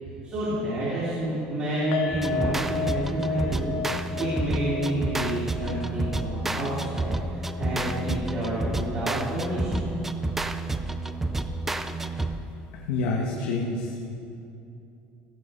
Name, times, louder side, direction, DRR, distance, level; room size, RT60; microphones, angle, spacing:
voice 1, 0.2-9.9, right 1 dB, 35° right, -10 dB, 2.7 m, -29 dB
sound 1, 1.9-9.1 9.4-9.6 9.9-10.0, left 6 dB, 65° left, 1.0 m, -35 dB
sound 2, 2.1-12.6, right 2 dB, 10° right, 0.3 m, -30 dB
voice 2, 12.7-14.0, left 3 dB, 90° left, -2 dB, 1.2 m, -28 dB
15.0 x 6.6 x 5.3 m, 2.7 s
cardioid pair, 170°, 4 cm